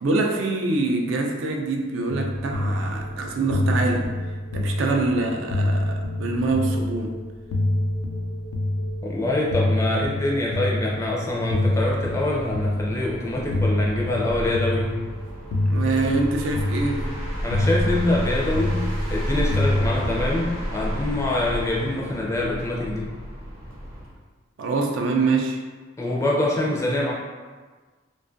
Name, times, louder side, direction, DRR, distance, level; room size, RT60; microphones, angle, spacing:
voice 1, 0.0-4.1 4.5-7.1 15.7-17.1 24.6-25.6, right 3 dB, 75° right, 2 dB, 0.3 m, -25 dB
sound 1, 2.1-20.1, left 1 dB, 90° left, 0.3 m, -27 dB
voice 2, 9.0-15.0 17.4-18.8 19.1-23.1 26.0-27.1, left 1 dB, 15° left, -3 dB, 0.4 m, -25 dB
sound 2, 11.5-24.2, equal, 90° right, 0.7 m, -32 dB
2.5 x 2.3 x 2.5 m, 1.4 s
head